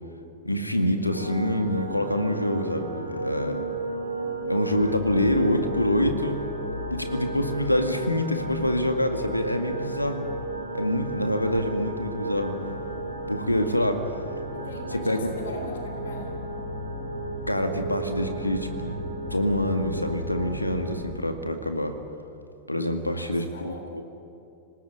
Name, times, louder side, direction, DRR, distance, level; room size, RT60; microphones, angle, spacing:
voice 1, 0.4-3.6 4.5-6.4 6.9-10.3 10.7-12.9 13.3-14.1 14.9-15.3 17.5-19.0 19.3-22.0 22.7-24.0, left 1 dB, 85° left, 7 dB, 2.0 m, -26 dB
sound 1, 1.1-20.9, right 2 dB, 90° right, 5.3 m, -33 dB
voice 2, 14.5-16.3 23.1-24.0, left 2 dB, 65° left, 5 dB, 3.6 m, -40 dB
26.5 x 19.0 x 9.7 m, 2.7 s
figure-of-eight pair, 90°, 0 cm